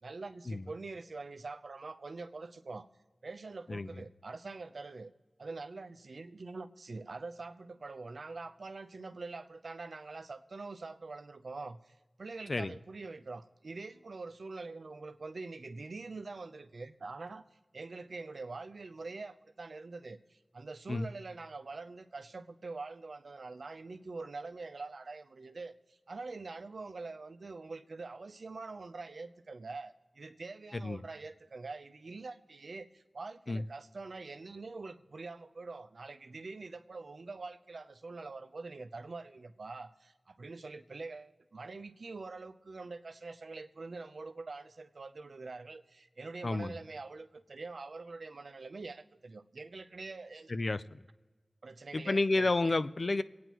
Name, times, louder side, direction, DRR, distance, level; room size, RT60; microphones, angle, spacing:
voice 1, 0.0-2.9 3.2-5.1 5.4-17.5 17.7-50.5 51.6-52.7, right 3 dB, 80° right, 8 dB, 0.6 m, -45 dB
voice 2, 46.4-46.8 50.5-51.0 51.9-53.2, left 2 dB, 60° left, 13 dB, 0.4 m, -31 dB
25.5 x 9.3 x 3.0 m, 1.2 s
wide cardioid pair, 50°, 0 cm